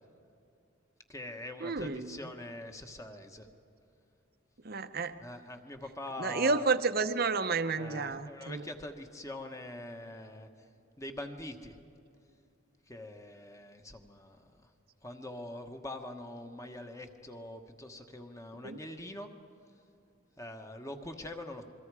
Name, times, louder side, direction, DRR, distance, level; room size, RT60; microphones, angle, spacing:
voice 1, 1.1-3.5 5.2-6.6 7.8-10.5 11.0-11.8 12.9-14.4 15.0-19.3 20.4-21.6, left 1 dB, 15° left, 5 dB, 1.3 m, -43 dB
voice 2, 1.6-2.2 4.6-5.1 6.2-8.6 18.6-18.8, right 4 dB, 45° right, 11 dB, 0.8 m, -31 dB
28.0 x 23.0 x 4.9 m, 2.7 s
head